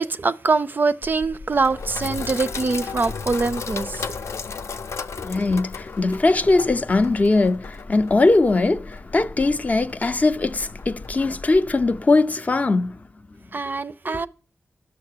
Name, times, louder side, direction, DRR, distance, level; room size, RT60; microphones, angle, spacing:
voice 1, 0.0-4.0 13.5-14.3, right 4 dB, 40° right, 0.4 m, -23 dB
Sink (filling or washing), 1.0-12.0, left 5 dB, 75° left, 0.7 m, -35 dB
voice 2, 5.2-13.0 14.1-14.2, left 3 dB, 30° left, 0.5 m, -20 dB
11.0 x 6.6 x 6.6 m
wide cardioid pair, 135°, 5 cm